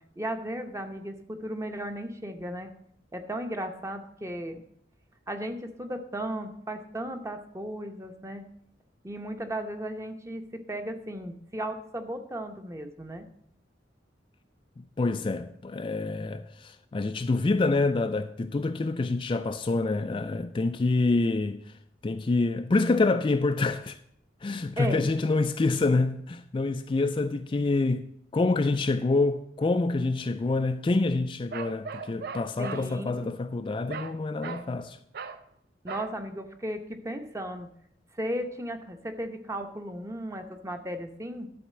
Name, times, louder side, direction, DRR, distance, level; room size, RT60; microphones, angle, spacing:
voice 1, 0.2-2.7 3.1-4.7 5.3-8.4 9.0-13.2 24.8-25.1 32.6-33.3 35.8-37.7 38.1-41.5, right 1 dB, 15° right, 0.8 m, -35 dB
voice 2, 15.0-21.6 22.0-24.0 24.4-28.1 28.3-35.0, left 3 dB, 30° left, 0.3 m, -26 dB
Bark, 31.5-32.9 33.9-34.2 34.4-34.7 35.1-35.4 35.9-36.1, right 5 dB, 60° right, 0.5 m, -38 dB
11.5 x 4.2 x 7.5 m
head